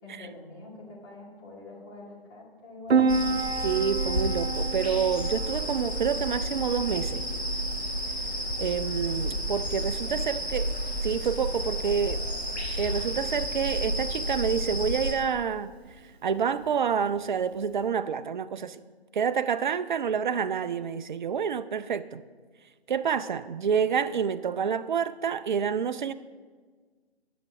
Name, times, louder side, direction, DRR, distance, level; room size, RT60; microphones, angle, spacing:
voice 1, 0.0-3.4 10.0-10.4, left 2 dB, 25° left, 2.2 m, -45 dB
Piano, 2.9-17.9, right 4 dB, 80° right, 0.7 m, -34 dB
sound 1, 3.1-15.1, equal, 90° left, 1.9 m, -31 dB
voice 2, 3.6-7.2 8.6-10.7 11.0-12.3 12.8-15.7 16.2-18.8 19.1-22.2 22.9-26.1, right 7 dB, 50° right, 0.4 m, -28 dB
9.2 x 5.8 x 6.0 m
figure-of-eight pair, 140°, 31 cm